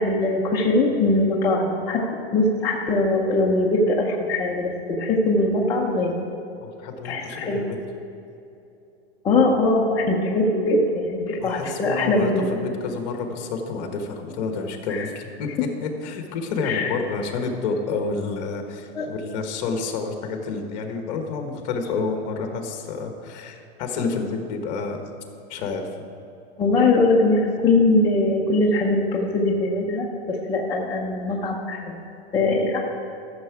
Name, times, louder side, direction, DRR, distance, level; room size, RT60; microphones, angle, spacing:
voice 1, 0.0-2.0 2.3-6.1 7.0-7.6 9.2-12.5 14.9-15.0 16.6-16.9 18.9-19.1 26.6-31.9 32.3-32.8, left 2 dB, 10° left, -4 dB, 0.5 m, -21 dB
voice 2, 6.6-7.8 11.4-25.0 25.5-25.9 32.3-32.7, left 4 dB, 40° left, 4 dB, 1.3 m, -29 dB
13.5 x 6.8 x 4.8 m, 2.9 s
supercardioid pair, 165°, 33 cm